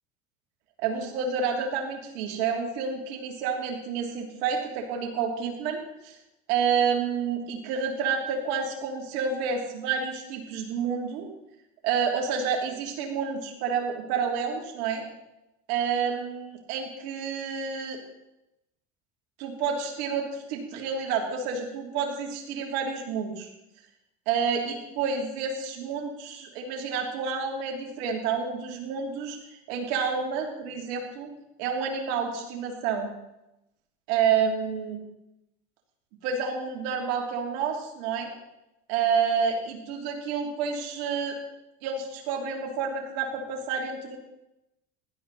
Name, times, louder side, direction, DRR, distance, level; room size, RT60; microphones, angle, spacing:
voice 1, 0.8-6.1 6.5-11.2 11.8-15.0 15.7-18.0 19.4-23.5 24.3-29.4 29.7-31.3 31.6-33.1 34.1-35.0 36.2-38.3 38.9-41.4 41.8-44.2, right 6 dB, 70° right, 1 dB, 3.4 m, -29 dB
16.0 x 12.5 x 4.2 m, 0.89 s
hypercardioid pair, 75°, 32 cm